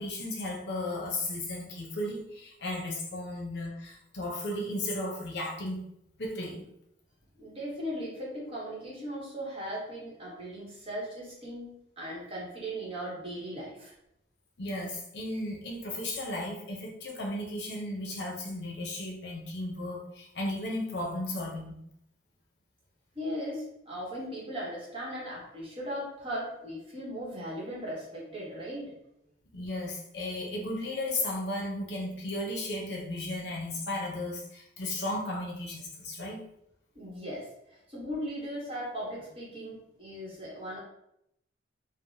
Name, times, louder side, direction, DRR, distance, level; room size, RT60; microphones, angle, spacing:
voice 1, 0.0-5.8 6.2-6.7 14.6-21.8 29.5-36.4, left 1 dB, 65° left, -1 dB, 0.7 m, -35 dB
voice 2, 7.4-13.9 23.1-29.0 36.9-40.8, equal, 30° right, -5 dB, 1.0 m, -38 dB
3.3 x 2.1 x 2.7 m, 0.77 s
head